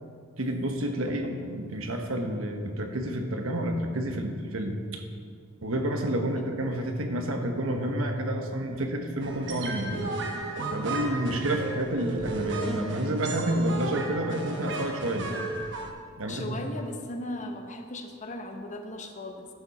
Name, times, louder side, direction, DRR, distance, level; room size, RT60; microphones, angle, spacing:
voice 1, 0.4-5.0 5.6-10.1 10.7-15.3 16.2-16.5, right 1 dB, 85° right, 4 dB, 1.1 m, -29 dB
sound 1, 9.2-15.9, right 2 dB, 60° right, 1.0 m, -34 dB
voice 2, 16.3-19.5, left 1 dB, 35° left, 5 dB, 0.8 m, -37 dB
12.0 x 7.2 x 4.2 m, 2.2 s
head